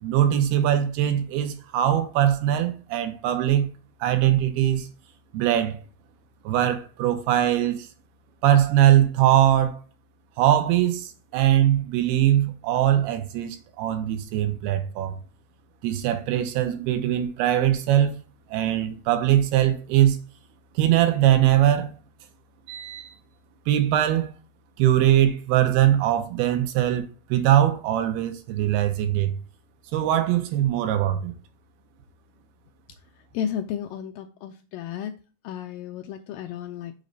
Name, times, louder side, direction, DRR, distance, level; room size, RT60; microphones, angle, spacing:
voice 1, 0.0-3.7 4.0-4.9 5.3-5.8 6.4-7.9 8.4-9.8 10.4-15.2 15.8-18.2 18.5-20.2 20.8-21.9 22.7-23.2 23.7-24.3 24.8-29.3 29.9-31.3, right 12 dB, 85° right, 2.8 m, -21 dB
voice 2, 33.3-35.1 35.4-36.9, left 9 dB, 85° left, 2.0 m, -33 dB
6.5 x 4.0 x 5.2 m
omnidirectional pair, 4.4 m